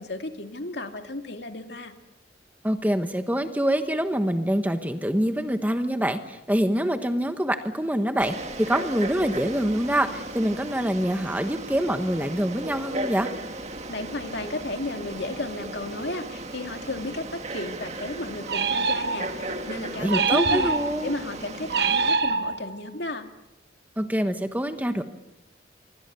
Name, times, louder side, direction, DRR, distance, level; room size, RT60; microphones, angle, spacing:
voice 1, 0.0-1.9 13.9-20.7 21.0-23.3, left 2 dB, 70° left, 5 dB, 2.3 m, -33 dB
voice 2, 2.6-13.3 20.0-21.1 24.0-25.0, equal, 10° right, 8 dB, 1.2 m, -25 dB
Frog, 8.2-22.1, right 2 dB, 40° right, 1.9 m, -36 dB
sound 1, 18.5-19.5 20.1-21.1 21.7-22.9, right 4 dB, 60° right, 1.0 m, -25 dB
27.0 x 24.0 x 7.0 m, 0.96 s
head